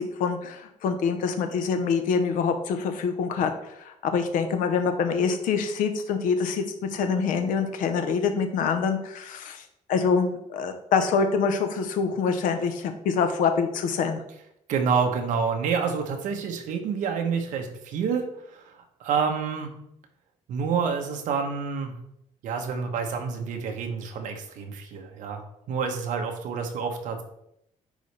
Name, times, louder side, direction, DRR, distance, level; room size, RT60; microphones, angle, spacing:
voice 1, 0.0-9.6 9.9-14.2, left 5 dB, 75° left, 7 dB, 0.9 m, -25 dB
voice 2, 14.7-19.7 20.5-21.9 22.4-27.2, right 6 dB, 70° right, 3 dB, 1.1 m, -28 dB
9.9 x 4.1 x 3.4 m, 0.77 s
cardioid pair, 160°, 14 cm